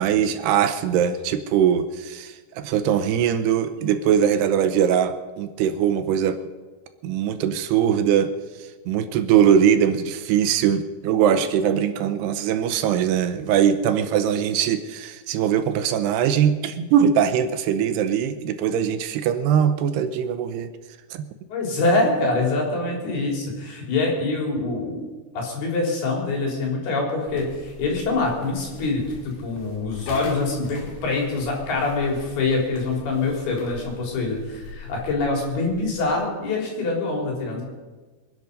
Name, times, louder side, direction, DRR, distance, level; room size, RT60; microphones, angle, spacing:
voice 1, 0.0-6.4 7.0-8.3 8.9-20.7 21.1-21.3, right 8 dB, 80° right, 10 dB, 2.8 m, -21 dB
voice 2, 21.5-25.0 25.3-37.6, left 3 dB, 65° left, -1 dB, 5.5 m, -25 dB
sound 1, 27.3-36.2, left 4 dB, 80° left, 4.2 m, -42 dB
25.0 x 10.5 x 5.4 m, 1.3 s
omnidirectional pair, 4.9 m